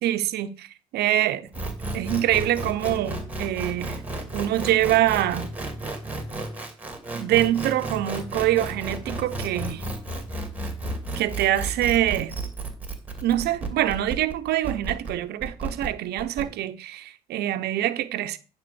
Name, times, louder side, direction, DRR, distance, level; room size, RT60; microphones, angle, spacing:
voice 1, 0.0-1.5 1.9-4.0 4.3-5.5 7.1-9.8 11.2-12.3 13.2-18.4, right 13 dB, 75° right, 0.8 m, -25 dB
sound 1, 1.5-16.4, right 2 dB, 10° right, 2.2 m, -32 dB
10.0 x 3.7 x 6.9 m
cardioid pair, 110°, 17 cm